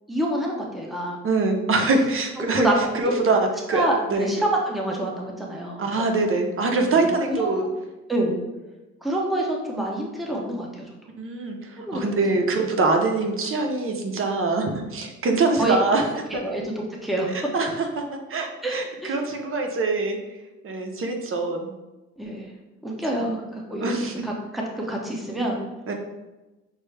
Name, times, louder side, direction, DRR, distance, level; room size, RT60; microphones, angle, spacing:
voice 1, 0.1-1.2 2.6-2.8 3.0-3.1 3.7-6.1 6.9-7.7 8.1-8.4 9.0-10.9 11.8-12.4 15.6-15.8 16.4-17.3 18.6-19.2 22.2-22.5 22.8-25.6, right 1 dB, ahead, -2 dB, 0.8 m, -27 dB
voice 2, 1.2-2.7 2.9-3.8 4.1-4.3 5.8-7.6 11.2-16.0 16.3-16.4 17.3-17.9 18.3-20.2 20.6-21.7 23.8-24.1 25.9-26.0, right 3 dB, 45° right, 3 dB, 0.8 m, -24 dB
6.2 x 2.1 x 3.3 m, 1.1 s
cardioid pair, 90°, 30 cm